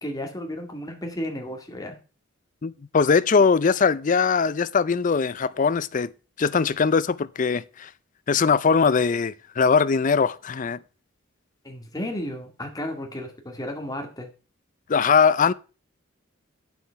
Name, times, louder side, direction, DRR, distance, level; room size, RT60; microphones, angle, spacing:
voice 1, 0.0-2.0 11.6-14.3, left 1 dB, 20° left, 2.0 m, -33 dB
voice 2, 2.6-6.1 6.4-7.9 8.3-10.8 14.9-15.5, left 5 dB, 40° left, 0.5 m, -21 dB
9.5 x 7.0 x 5.7 m
head